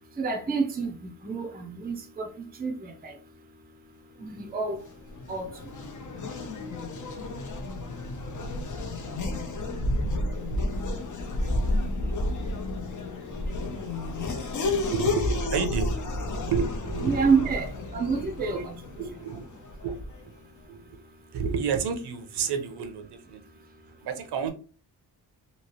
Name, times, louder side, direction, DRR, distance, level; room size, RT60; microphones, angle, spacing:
voice 1, 0.2-2.3 2.6-3.1 4.2-4.8 5.3-5.5 17.0-18.7, right 5 dB, 25° right, 0.5 m, -28 dB
Race car auto racing / Accelerating revving vroom, 4.7-20.3, left 2 dB, 50° left, 0.7 m, -31 dB
voice 2, 14.9-16.0 16.5-17.2 18.2-18.6 19.0-19.4 19.8-19.9 20.7-20.8 21.3-23.4 24.0-24.5, right 6 dB, 75° right, 0.7 m, -30 dB
3.0 x 2.8 x 2.9 m
wide cardioid pair, 175°, 40 cm